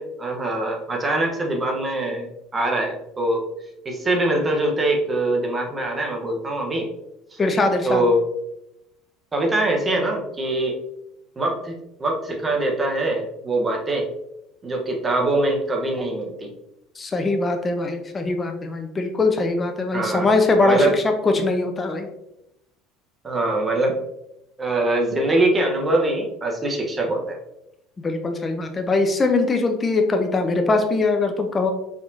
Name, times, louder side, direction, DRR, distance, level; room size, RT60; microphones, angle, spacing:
voice 1, 0.0-3.4 3.8-6.9 7.3-7.4 7.8-8.2 9.3-10.7 11.4-14.1 14.6-16.5 19.9-20.3 20.6-20.9 23.2-24.0 24.6-27.4, right 2 dB, 25° right, 0 dB, 1.1 m, -23 dB
voice 2, 7.4-8.0 17.0-22.1 28.0-31.7, left 3 dB, 25° left, 5 dB, 0.7 m, -21 dB
4.9 x 3.5 x 2.7 m, 0.86 s
supercardioid pair, 90°, 0 cm